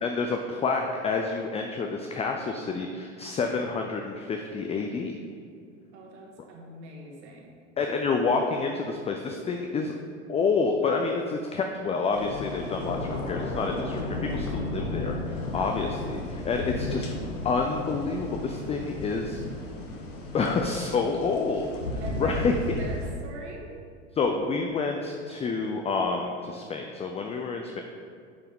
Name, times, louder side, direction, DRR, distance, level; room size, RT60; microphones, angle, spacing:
voice 1, 0.0-5.1 7.8-9.9 10.3-17.1 17.4-19.4 20.3-22.5 24.1-27.8, left 4 dB, 20° left, 3 dB, 0.4 m, -28 dB
voice 2, 5.9-7.5 15.5-15.7 22.0-23.7, right 2 dB, 65° right, -1 dB, 1.7 m, -42 dB
sound 1, 12.1-23.1, left 2 dB, 85° left, 1.1 m, -34 dB
9.4 x 4.5 x 3.7 m, 2.2 s
hypercardioid pair, 90°, 36 cm